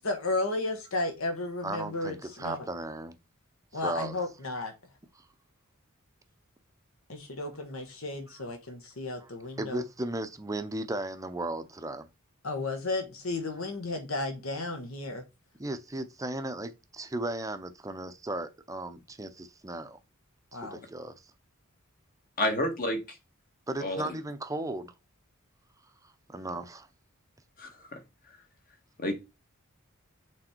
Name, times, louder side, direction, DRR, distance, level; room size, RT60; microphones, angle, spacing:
voice 1, 0.0-2.6 3.7-4.7 7.1-9.8 12.4-15.2 20.5-20.8, left 2 dB, 75° left, 1.6 m, -33 dB
voice 2, 1.6-3.2 3.7-4.2 5.2-5.3 9.2-9.3 9.6-12.1 15.6-20.0 20.5-21.1 23.7-24.9 26.0-26.9, right 2 dB, 15° right, 0.6 m, -36 dB
voice 3, 22.4-23.2 23.8-24.0 27.6-28.0 29.0-29.1, left 1 dB, 45° left, 1.5 m, -30 dB
6.5 x 3.5 x 4.5 m
head